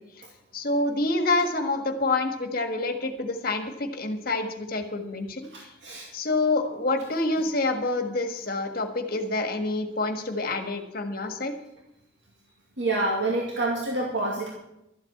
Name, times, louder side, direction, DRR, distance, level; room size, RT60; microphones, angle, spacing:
voice 1, 0.5-5.5 6.1-11.5, left 2 dB, 50° left, 6 dB, 1.6 m, -27 dB
voice 2, 5.5-6.1 12.8-14.5, right 2 dB, 75° right, -2 dB, 2.2 m, -27 dB
13.0 x 7.9 x 8.5 m, 0.86 s
head